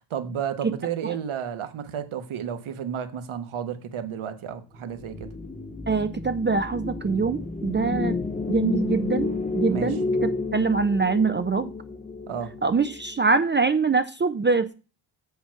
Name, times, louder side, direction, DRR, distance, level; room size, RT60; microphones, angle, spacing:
voice 1, 0.1-5.3 9.7-10.0 12.3-12.5, right 8 dB, 80° right, 1.4 m, -32 dB
sound 1, 4.9-13.3, left 3 dB, 15° left, 0.6 m, -31 dB
voice 2, 5.9-8.2 8.5-11.7 12.6-14.7, right 4 dB, 25° right, 0.5 m, -24 dB
7.4 x 5.6 x 5.7 m
wide cardioid pair, 125°, 48 cm